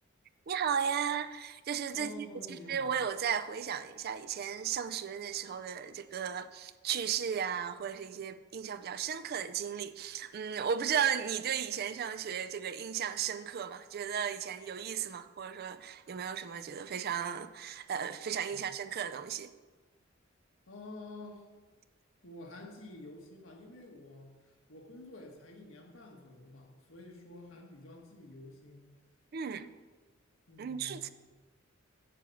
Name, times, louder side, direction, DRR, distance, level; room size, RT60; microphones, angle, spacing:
voice 1, 0.5-19.5 29.3-29.7 30.6-31.1, right 8 dB, 50° right, 0.4 m, -35 dB
voice 2, 1.9-3.0 18.5-18.7 20.7-21.5 22.2-28.9 30.5-31.1, left 2 dB, 75° left, 1.5 m, -49 dB
7.6 x 5.2 x 7.1 m
head